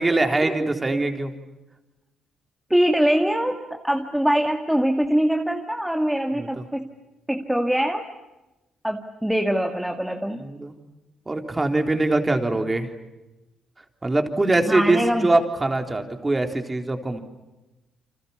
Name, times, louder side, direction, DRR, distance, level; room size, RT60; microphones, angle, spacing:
voice 1, 0.0-1.3 6.4-6.6 10.4-10.7 11.3-12.9 14.0-17.2, right 2 dB, 20° right, 5 dB, 3.8 m, -23 dB
voice 2, 2.7-6.9 7.3-8.1 8.8-10.4 14.7-15.3, equal, 5° right, 4 dB, 2.0 m, -23 dB
29.5 x 26.0 x 7.1 m, 1.0 s
cardioid pair, 90°, 0 cm